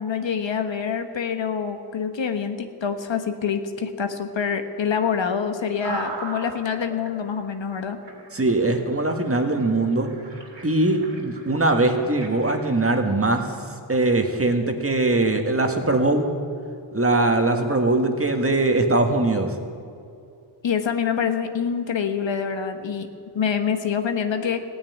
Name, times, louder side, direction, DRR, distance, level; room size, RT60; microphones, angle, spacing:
voice 1, 0.0-8.0 20.6-23.1 23.3-24.6, left 7 dB, 70° left, 7 dB, 1.3 m, -26 dB
sound 1, 5.8-7.1 7.7-7.8 8.0-12.9, right 3 dB, 65° right, 2.9 m, -39 dB
voice 2, 8.3-10.1 10.6-13.5 13.9-16.3 16.9-19.5, right 2 dB, 30° right, 4 dB, 1.7 m, -21 dB
16.0 x 9.5 x 9.4 m, 2.4 s
wide cardioid pair, 80°, 46 cm